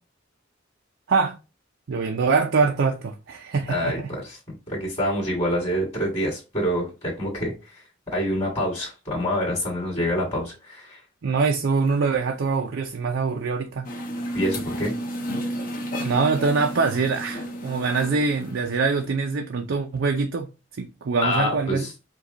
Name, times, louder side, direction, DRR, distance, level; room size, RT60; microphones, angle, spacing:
voice 1, 1.9-4.1 11.2-13.9 16.0-20.5 20.8-21.8, right 4 dB, 70° right, 0.5 m, -24 dB
voice 2, 3.7-4.4 4.7-11.0 14.3-14.9 21.2-21.9, equal, 25° left, 1.9 m, -26 dB
sound 1, 13.8-19.1, equal, 45° left, 1.0 m, -32 dB
4.9 x 2.3 x 3.8 m
head